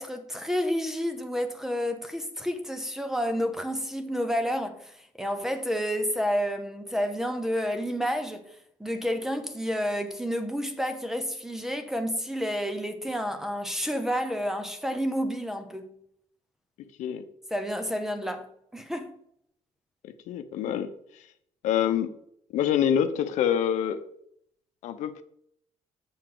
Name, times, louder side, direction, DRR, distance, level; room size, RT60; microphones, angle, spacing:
voice 1, 0.0-8.4 8.8-15.9 17.5-18.5 18.7-19.1, equal, 5° right, 0.6 m, -30 dB
voice 2, 20.0-20.9 21.6-22.1 22.5-24.0 24.8-25.2, left 9 dB, 80° left, 0.7 m, -26 dB
7.0 x 6.7 x 3.8 m
cardioid pair, 165°, 12 cm